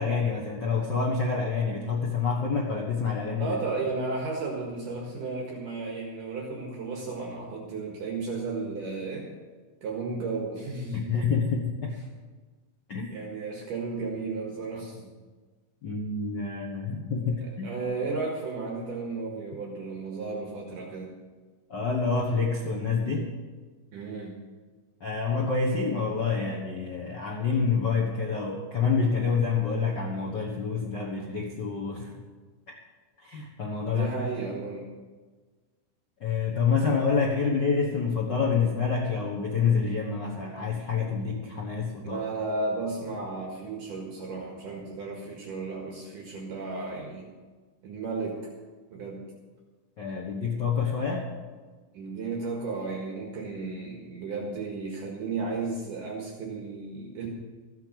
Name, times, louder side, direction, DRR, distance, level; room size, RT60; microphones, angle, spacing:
voice 1, 0.0-3.6 10.9-12.0 12.9-13.1 15.8-17.8 21.7-23.3 25.0-32.1 32.7-32.8 33.2-34.1 36.2-42.2 50.0-51.3, left 5 dB, 65° left, -2 dB, 1.0 m, -27 dB
voice 2, 3.4-9.3 9.8-11.3 13.1-15.1 17.4-21.1 23.9-24.4 33.9-34.9 42.0-47.3 47.8-48.5 48.9-49.3 51.9-57.3, right 3 dB, 65° right, -1 dB, 3.1 m, -34 dB
15.0 x 8.3 x 7.8 m, 1.4 s
omnidirectional pair, 4.3 m